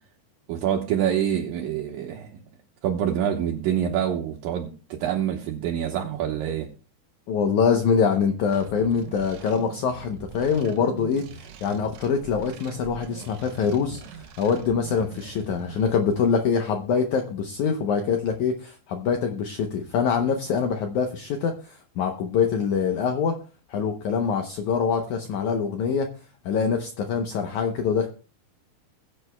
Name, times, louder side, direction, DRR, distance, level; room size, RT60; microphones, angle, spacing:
voice 1, 0.5-2.3 2.8-6.7, right 9 dB, 75° right, 2.5 m, -26 dB
voice 2, 7.3-23.4 23.7-26.1 26.4-28.1, left 6 dB, 80° left, 1.7 m, -24 dB
sound 1, 8.5-15.9, right 4 dB, 90° right, 1.5 m, -42 dB
22.0 x 7.8 x 2.2 m
omnidirectional pair, 4.6 m